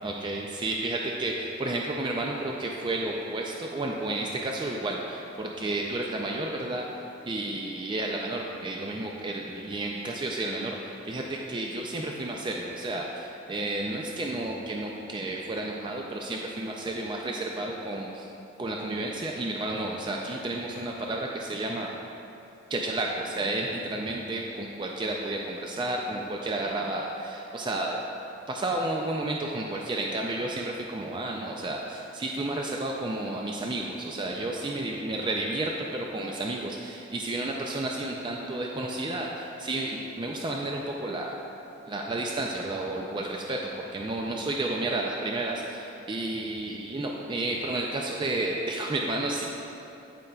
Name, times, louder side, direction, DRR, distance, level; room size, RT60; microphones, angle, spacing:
voice 1, 0.0-7.0 7.3-18.3 18.6-21.9 22.7-28.0 28.5-41.4 41.9-49.4, right 2 dB, 25° right, -1 dB, 0.4 m, -31 dB
14.0 x 5.2 x 2.3 m, 2.8 s
head